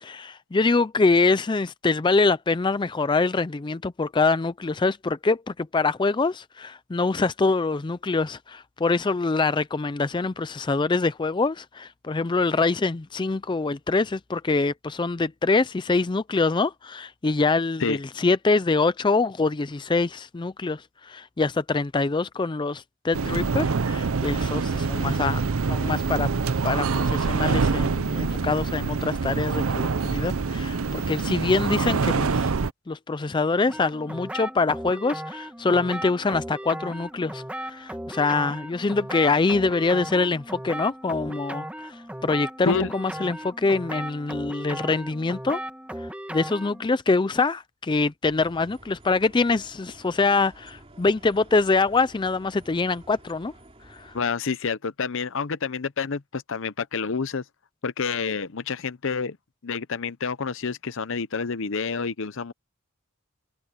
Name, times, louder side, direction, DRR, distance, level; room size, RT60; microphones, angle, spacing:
voice 1, 0.0-26.3 26.6-32.5 32.9-45.6 46.0-53.5 53.9-54.1, left 3 dB, 20° left, 0.4 m, -24 dB
sound 1, 23.1-32.7, right 4 dB, 70° right, 0.6 m, -25 dB
sound 2, 33.7-46.9, right 1 dB, 5° right, 1.5 m, -36 dB
sound 3, 48.3-54.2, right 1 dB, 25° right, 3.6 m, -51 dB
voice 2, 54.1-57.4 57.8-59.4 59.6-62.5, left 5 dB, 60° left, 0.8 m, -28 dB
head